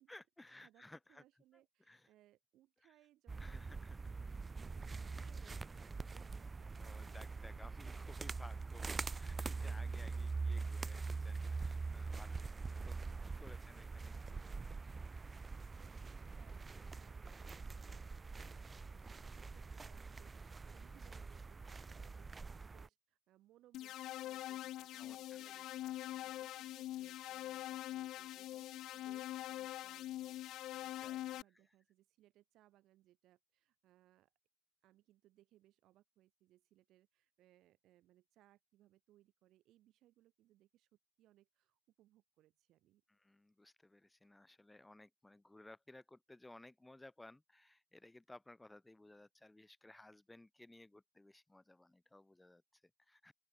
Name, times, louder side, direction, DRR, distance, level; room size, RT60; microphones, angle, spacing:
voice 1, 0.1-1.2 1.9-2.1 2.8-2.9 3.4-4.0 6.8-14.7 25.0-26.0 27.0-27.1 31.0-31.7 43.1-53.3, left 2 dB, 10° left, 4.9 m, -59 dB
voice 2, 0.6-8.0 15.4-20.3 20.6-34.3 34.8-43.0, right 14 dB, 75° right, 6.8 m, -70 dB
sound 1, 3.3-22.9, right 4 dB, 25° right, 0.5 m, -44 dB
sound 2, 23.7-31.4, left 14 dB, 70° left, 0.8 m, -44 dB
open air
cardioid pair, 95°, 0 cm